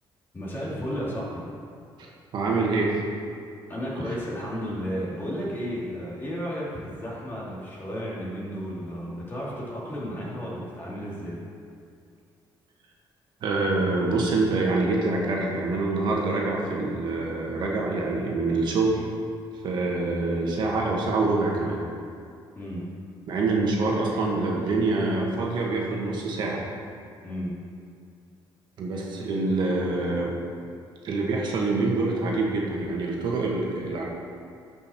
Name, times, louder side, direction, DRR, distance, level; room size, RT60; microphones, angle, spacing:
voice 1, 0.3-1.4 3.7-11.4 22.5-22.8 27.2-27.5, equal, 25° left, -6 dB, 2.4 m, -33 dB
voice 2, 2.0-3.0 13.4-19.0 19.6-21.8 23.3-26.6 28.8-30.4 31.0-34.0, right 3 dB, 60° right, -2 dB, 1.6 m, -25 dB
13.5 x 5.6 x 4.3 m, 2.3 s
cardioid pair, 150°, 9 cm